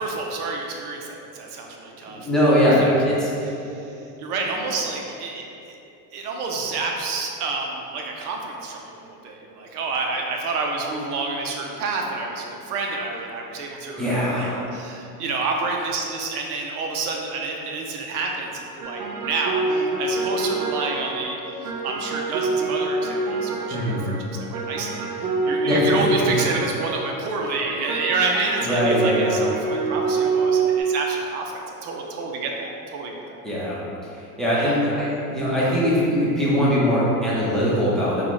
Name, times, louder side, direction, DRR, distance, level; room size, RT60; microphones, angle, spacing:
voice 1, 0.0-2.5 2.8-2.9 3.6-5.8 6.1-33.4 34.5-34.8 35.6-35.8, right 3 dB, 70° right, 1 dB, 0.8 m, -29 dB
voice 2, 2.1-3.5 14.0-14.6 23.7-24.1 25.6-25.8 28.6-29.3 33.4-38.2, equal, ahead, -9 dB, 0.8 m, -21 dB
sound 1, 18.8-30.8, right 3 dB, 35° right, 0.4 m, -26 dB
5.7 x 2.4 x 3.1 m, 2.8 s
supercardioid pair, 120°, 47 cm